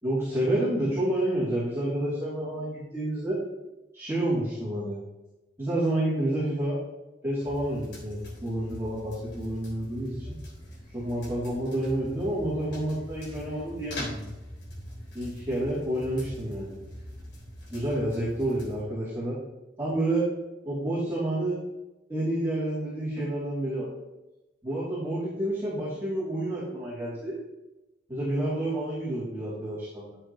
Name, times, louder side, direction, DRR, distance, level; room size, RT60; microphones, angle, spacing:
voice 1, 0.0-3.4 3.9-5.0 5.6-6.8 7.2-10.3 10.9-14.3 15.1-16.8 17.7-19.3 19.8-20.3 20.6-21.6 22.1-23.9 24.6-27.4 28.1-30.2, right 1 dB, 15° right, -13 dB, 3.0 m, -29 dB
sound 1, 7.4-18.8, left 1 dB, 65° left, 3.2 m, -43 dB
11.5 x 7.4 x 3.1 m, 1.0 s
head